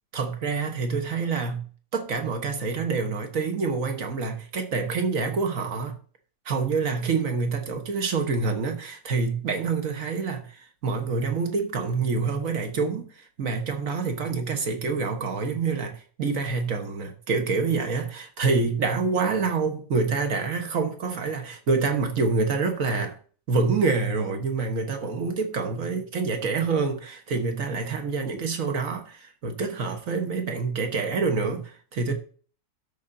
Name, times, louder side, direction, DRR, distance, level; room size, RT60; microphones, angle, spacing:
voice 1, 0.1-1.7 1.9-6.0 6.4-23.2 23.5-32.1, right 4 dB, 50° right, 1.6 m, -27 dB
12.5 x 5.6 x 3.9 m
omnidirectional pair, 2.0 m